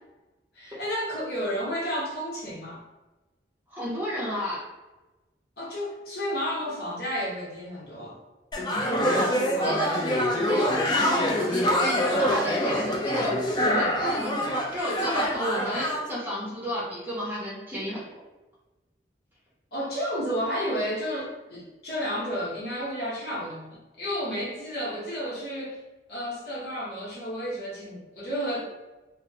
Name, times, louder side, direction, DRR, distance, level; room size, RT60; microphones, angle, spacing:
voice 1, 0.5-2.8 5.6-8.2 8.8-10.2 19.7-25.8 26.1-28.7, equal, 60° left, -6 dB, 0.9 m, -32 dB
voice 2, 3.7-4.6 9.6-9.9 10.5-14.4 14.7-18.2, equal, 10° right, -7 dB, 0.7 m, -32 dB
sound 1, 8.5-16.0, equal, 25° left, 0.4 m, -25 dB
2.7 x 2.0 x 2.7 m, 1.1 s
head